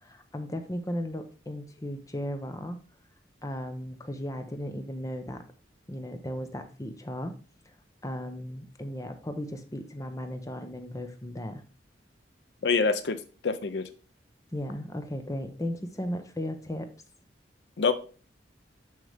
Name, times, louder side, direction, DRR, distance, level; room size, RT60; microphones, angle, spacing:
voice 1, 0.0-2.8 3.4-5.4 5.9-7.4 8.0-11.6 14.5-16.9, left 1 dB, 20° left, 7 dB, 0.8 m, -36 dB
voice 2, 12.6-13.9 17.8-17.9, left 4 dB, 65° left, 12 dB, 0.5 m, -26 dB
6.3 x 5.8 x 3.4 m, 0.37 s
head